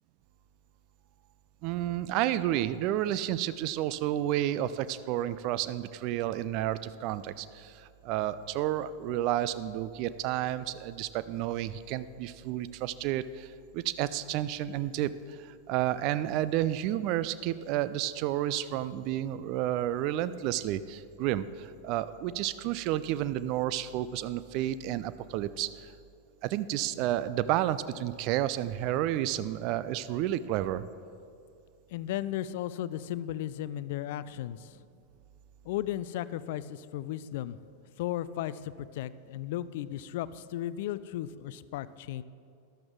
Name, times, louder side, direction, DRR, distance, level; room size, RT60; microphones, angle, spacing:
voice 1, 1.6-25.9 26.4-30.8, right 13 dB, 40° right, 15 dB, 0.4 m, -31 dB
voice 2, 31.9-34.8 35.7-37.6 38.0-42.2, left 12 dB, 50° left, 17 dB, 0.4 m, -35 dB
13.5 x 11.5 x 3.7 m, 2.4 s
figure-of-eight pair, 90°, 0 cm